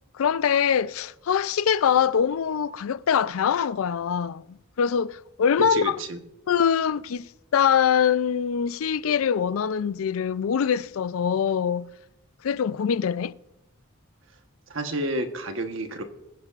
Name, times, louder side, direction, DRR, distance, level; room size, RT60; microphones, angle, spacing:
voice 1, 0.2-6.0 6.5-7.3 7.5-11.9 12.4-13.3, left 7 dB, 90° left, 0.4 m, -23 dB
voice 2, 5.7-6.2 14.7-16.0, right 1 dB, 65° right, 1.1 m, -30 dB
21.5 x 9.9 x 2.5 m
head